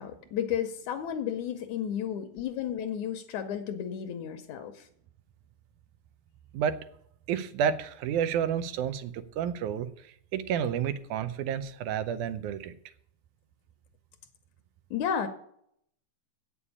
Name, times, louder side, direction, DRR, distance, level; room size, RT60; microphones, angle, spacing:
voice 1, 0.0-4.9 14.9-15.3, left 9 dB, 75° left, 8 dB, 2.1 m, -32 dB
voice 2, 7.3-12.7, right 8 dB, 80° right, 11 dB, 2.2 m, -30 dB
8.5 x 7.1 x 8.5 m, 0.67 s
omnidirectional pair, 3.5 m